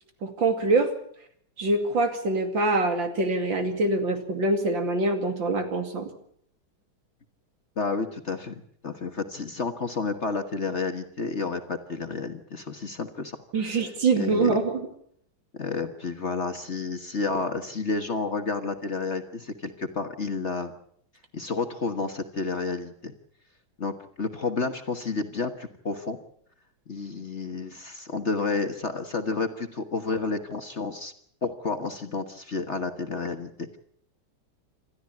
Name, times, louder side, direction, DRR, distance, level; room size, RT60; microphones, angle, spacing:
voice 1, 0.2-0.9 1.6-6.1 13.5-14.9, right 3 dB, 70° right, 7 dB, 3.2 m, -24 dB
voice 2, 7.8-13.8 14.2-14.6 15.6-20.7 21.3-23.1 23.8-26.2 26.9-31.1 31.4-33.8, left 4 dB, 40° left, 7 dB, 1.5 m, -31 dB
27.5 x 13.5 x 8.5 m, 0.66 s
omnidirectional pair, 2.2 m